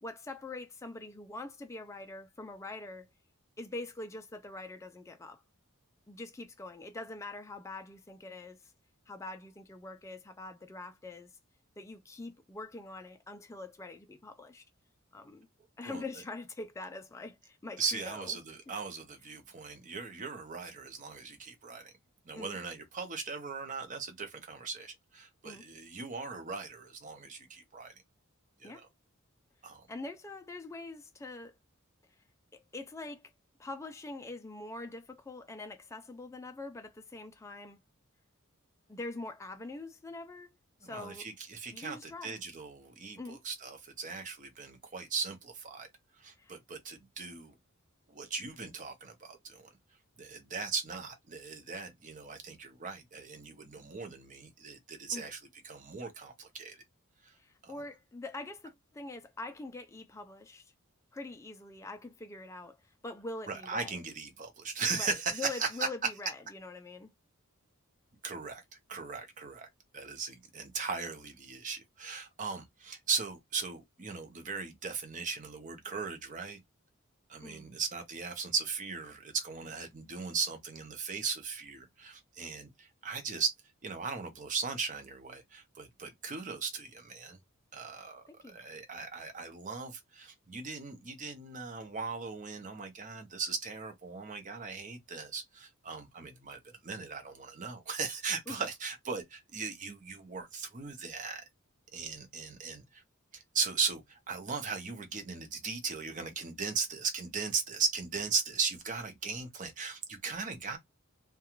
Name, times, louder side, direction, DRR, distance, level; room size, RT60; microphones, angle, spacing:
voice 1, 0.0-3.1 3.6-5.4 6.1-8.6 9.1-11.3 11.8-14.6 15.1-15.5 15.8-18.4 22.3-22.6 25.4-25.6 28.6-28.8 29.9-31.5 32.5-33.3 33.6-37.8 38.9-40.6 40.8-41.3 41.7-42.4 43.2-43.4 46.4-46.5 55.1-55.3 57.4-60.7 61.1-63.9 64.9-67.1 77.4-77.7 88.3-88.6 98.5-98.6, left 2 dB, 15° left, 0.3 m, -44 dB
voice 2, 17.8-21.9 22.3-27.9 28.6-28.9 29.6-29.9 40.8-45.9 46.2-47.5 48.1-49.7 50.2-56.8 57.2-57.3 57.6-57.7 63.5-65.9 68.2-68.6 68.9-76.6 77.3-83.5 83.8-87.4 87.7-101.4 101.9-103.0 103.3-110.8, right 5 dB, 35° right, 0.7 m, -38 dB
2.4 x 2.2 x 2.9 m
head